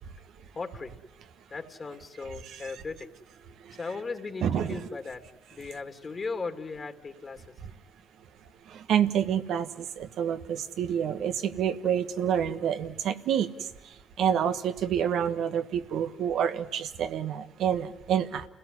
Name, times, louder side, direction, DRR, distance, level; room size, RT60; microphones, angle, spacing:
voice 1, 0.5-0.9 1.5-3.1 3.7-5.2 5.5-7.5, left 4 dB, 45° left, 6 dB, 2.8 m, -37 dB
voice 2, 4.4-4.8 8.7-13.5 14.2-18.5, right 9 dB, 75° right, 9 dB, 1.4 m, -28 dB
29.5 x 17.0 x 9.8 m, 0.95 s
hypercardioid pair, 50°, 0 cm